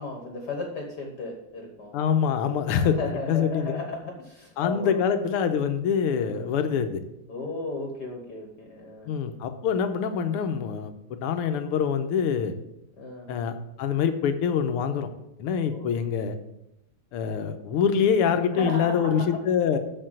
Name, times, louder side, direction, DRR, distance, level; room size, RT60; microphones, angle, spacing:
voice 1, 0.0-2.0 2.6-5.0 6.2-6.5 7.3-9.1 13.0-13.3 15.6-15.9 18.5-19.4, left 3 dB, 55° left, 1 dB, 1.6 m, -35 dB
voice 2, 1.9-3.0 3.3-3.7 4.6-7.0 9.1-10.9 11.2-12.6 13.3-15.1 15.4-16.4 17.1-19.8, left 7 dB, 85° left, 8 dB, 1.8 m, -25 dB
6.7 x 6.7 x 7.7 m, 0.85 s
omnidirectional pair, 2.4 m